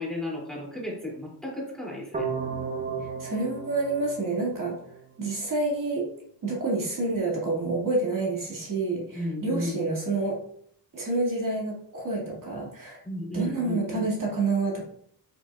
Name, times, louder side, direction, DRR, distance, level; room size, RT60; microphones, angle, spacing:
voice 1, 0.0-2.3 9.1-9.9 13.0-14.1, left 1 dB, ahead, -4 dB, 2.8 m, -34 dB
sound 1, 2.1-5.1, right 5 dB, 20° right, 1.1 m, -34 dB
voice 2, 3.0-4.8 5.2-6.1 6.4-10.4 10.9-13.0 13.3-14.8, right 3 dB, 45° right, -4 dB, 2.2 m, -28 dB
7.6 x 6.9 x 2.4 m, 0.66 s
cardioid pair, 130°, 44 cm